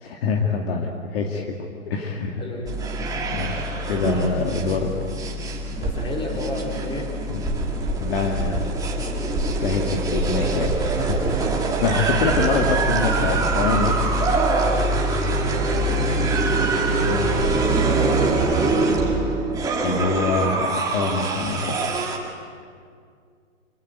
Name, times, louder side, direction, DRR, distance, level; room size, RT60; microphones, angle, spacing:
voice 1, 0.0-1.6 1.9-2.3 3.3-4.9 8.0-8.5 9.6-11.2 11.6-14.0 17.0-17.5 19.8-21.9, left 4 dB, 45° left, 2 dB, 2.3 m, -25 dB
voice 2, 2.3-2.8 4.4-4.7 5.7-7.2 7.9-8.1 8.5-9.2 14.7-16.4 17.7-19.0, left 1 dB, 15° left, 0 dB, 4.2 m, -34 dB
sound 1, 2.7-22.2, right 2 dB, 10° right, 2.3 m, -23 dB
26.5 x 22.0 x 9.3 m, 2.2 s
hypercardioid pair, 150°, 41 cm